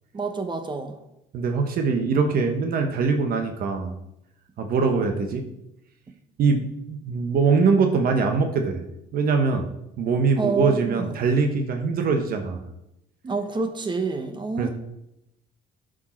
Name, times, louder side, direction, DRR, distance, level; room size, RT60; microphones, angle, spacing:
voice 1, 0.1-1.0 10.4-11.1 13.2-14.7, right 4 dB, 25° right, 7 dB, 1.2 m, -28 dB
voice 2, 1.3-3.9 4.6-5.4 6.4-8.8 9.1-9.7 10.0-12.6 14.6-14.7, right 4 dB, 60° right, 5 dB, 1.2 m, -22 dB
11.5 x 5.2 x 4.5 m, 0.86 s
cardioid pair, 110°, 17 cm